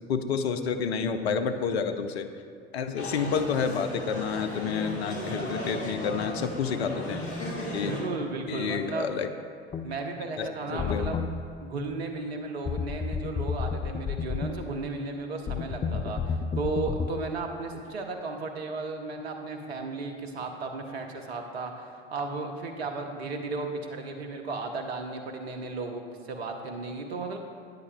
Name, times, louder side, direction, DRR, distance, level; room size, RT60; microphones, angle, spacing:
voice 1, 0.1-2.3 2.7-7.2 7.7-7.9 8.5-9.3 10.4-11.2, left 6 dB, 70° left, 8 dB, 0.6 m, -29 dB
sound 1, 3.0-8.0, left 1 dB, 40° left, 2.2 m, -36 dB
voice 2, 7.9-9.1 9.8-11.2 11.6-27.4, right 3 dB, 70° right, 4 dB, 1.0 m, -34 dB
sound 2, 9.7-9.9 10.8-11.3 12.7-14.5 15.5-17.1, left 6 dB, 20° left, 0.4 m, -31 dB
13.0 x 9.7 x 2.2 m, 2.2 s
figure-of-eight pair, 60°, 32 cm